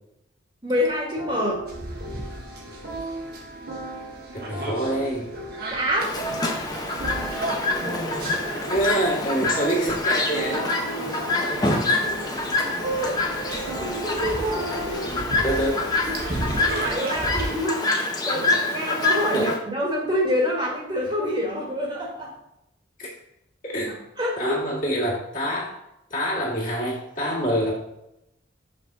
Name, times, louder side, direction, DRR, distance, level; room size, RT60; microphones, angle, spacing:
voice 1, 0.6-1.6 5.7-6.1 10.8-11.2 12.9-15.3 15.5-15.6 16.0-22.3 24.2-24.6, equal, 25° right, -3 dB, 1.6 m, -27 dB
sound 1, 0.7-16.0, right 2 dB, 85° right, 2.3 m, -36 dB
sound 2, 1.7-17.5, right 1 dB, 55° right, 1.3 m, -36 dB
voice 2, 4.3-5.3 8.7-10.7 15.0-15.9 18.3-18.5 19.3-19.5 23.0-23.1 23.6-24.0 24.4-25.7 26.1-27.7, right 1 dB, 45° left, -5 dB, 2.2 m, -26 dB
Chirp tweet, 6.0-19.6, left 2 dB, 20° left, 0.9 m, -26 dB
5.7 x 4.1 x 6.1 m, 0.85 s
head